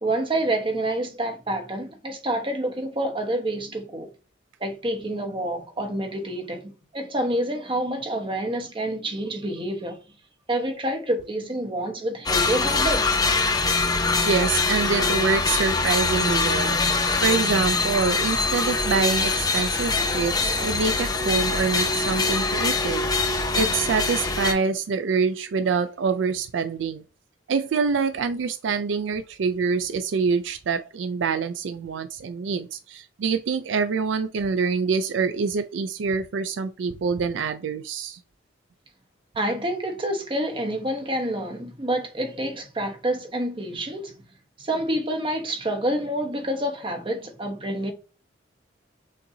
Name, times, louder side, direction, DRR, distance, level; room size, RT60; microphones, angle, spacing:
voice 1, 0.0-4.1 4.6-10.0 10.5-13.3 39.3-44.1 44.6-47.9, right 1 dB, 25° right, 1.0 m, -28 dB
sound 1, 12.3-24.5, left 3 dB, 20° left, 0.6 m, -23 dB
voice 2, 14.2-27.0 27.5-38.2, right 5 dB, 75° right, 0.4 m, -26 dB
6.5 x 2.7 x 2.7 m
head